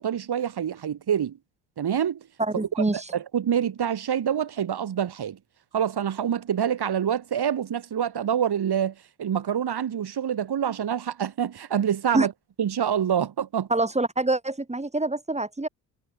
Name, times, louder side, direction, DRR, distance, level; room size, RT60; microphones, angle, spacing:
voice 1, 0.0-1.4 1.8-2.2 2.5-5.4 5.7-12.3 12.6-13.7, right 9 dB, 50° right, 5.3 m, -26 dB
voice 2, 2.4-3.1 12.1-12.3 13.7-15.7, right 2 dB, 15° right, 3.8 m, -25 dB
hypercardioid pair, 50°, 49 cm